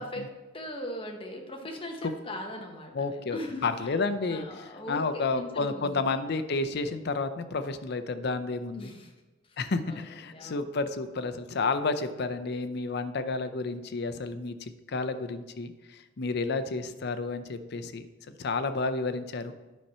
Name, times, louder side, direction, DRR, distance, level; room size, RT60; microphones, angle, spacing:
voice 1, 0.0-3.9 4.3-6.1 8.8-9.1 9.5-9.6 9.9-10.0 10.3-10.6, left 1 dB, 25° left, 2 dB, 1.0 m, -40 dB
voice 2, 2.9-8.9 9.6-19.5, left 3 dB, 55° left, 11 dB, 0.5 m, -31 dB
9.3 x 4.3 x 5.5 m, 1.1 s
head